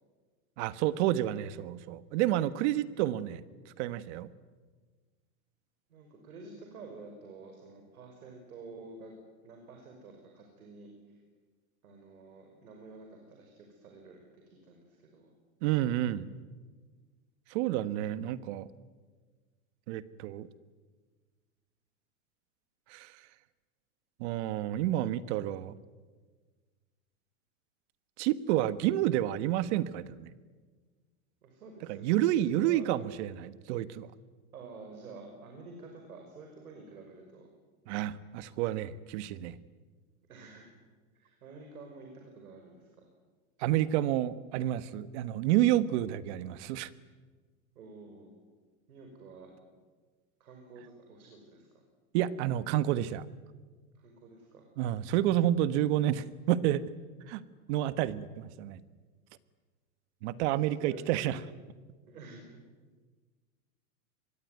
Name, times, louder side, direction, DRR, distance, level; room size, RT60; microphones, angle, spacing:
voice 1, 0.6-3.4 3.8-4.3 15.6-16.2 17.5-18.7 19.9-20.5 22.9-23.1 24.2-25.7 28.2-30.3 31.9-34.1 37.9-39.6 43.6-46.9 52.1-53.2 54.8-56.8 57.3-58.8 60.2-61.4, right 13 dB, 55° right, 15 dB, 1.4 m, -29 dB
voice 2, 5.9-9.1 9.4-11.2 11.8-15.3 31.4-32.9 34.5-37.5 40.3-40.7 41.1-43.1 47.7-48.3 48.9-49.7 50.4-51.8 53.9-54.6 60.5-61.5 62.1-62.6, right 3 dB, 90° right, 3 dB, 5.9 m, -50 dB
24.5 x 22.0 x 9.4 m, 1.4 s
supercardioid pair, 135°, 42 cm